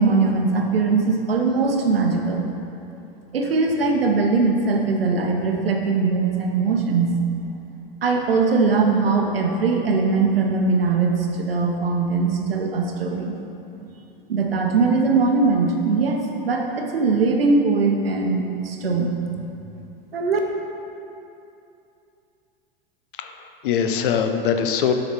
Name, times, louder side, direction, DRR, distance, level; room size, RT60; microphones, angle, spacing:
voice 1, 0.0-2.4 3.3-7.1 8.0-13.3 14.3-19.4 20.1-20.4, right 4 dB, 80° right, 2 dB, 0.8 m, -21 dB
voice 2, 23.2-24.9, left 7 dB, 65° left, 7 dB, 0.6 m, -22 dB
6.7 x 4.0 x 4.4 m, 2.7 s
hypercardioid pair, 90°, 29 cm